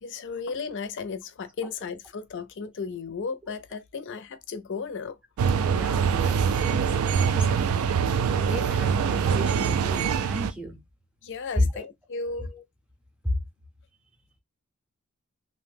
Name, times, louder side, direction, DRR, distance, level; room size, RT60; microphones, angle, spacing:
voice 1, 0.0-5.2 11.2-12.5, left 5 dB, 55° left, 0.5 m, -35 dB
sound 1, 5.4-10.5, right 6 dB, 75° right, 0.3 m, -24 dB
voice 2, 5.7-6.9 7.3-7.5 8.1-10.8 11.6-11.8 12.5-12.6 13.2-13.3, left 1 dB, 5° right, 0.6 m, -32 dB
2.6 x 2.1 x 3.3 m
head